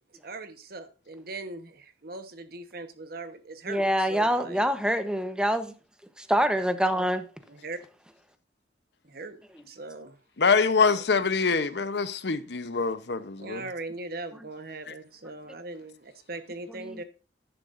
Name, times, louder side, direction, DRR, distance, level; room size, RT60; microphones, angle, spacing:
voice 1, 0.1-4.7 7.5-7.8 9.0-10.2 10.9-11.3 13.4-17.0, right 2 dB, 60° right, 1.1 m, -40 dB
voice 2, 3.7-5.7 6.2-7.3, equal, 5° right, 0.9 m, -25 dB
voice 3, 10.4-13.6, left 5 dB, 70° left, 0.8 m, -24 dB
10.5 x 10.5 x 2.6 m
head